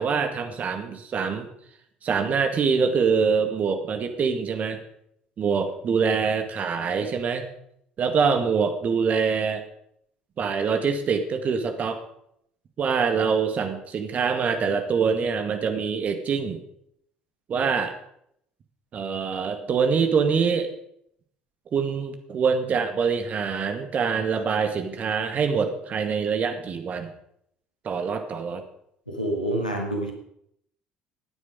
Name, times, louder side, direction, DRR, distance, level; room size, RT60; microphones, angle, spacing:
voice 1, 0.0-1.5 2.0-4.8 5.4-7.4 8.0-9.6 10.4-12.0 12.8-16.6 17.5-17.9 18.9-20.7 21.7-27.1 27.8-28.6, right 5 dB, 40° right, 7 dB, 2.0 m, -24 dB
voice 2, 29.1-30.1, right 1 dB, 90° left, 2 dB, 2.2 m, -27 dB
16.5 x 9.5 x 5.3 m, 0.72 s
figure-of-eight pair, 60°, 4 cm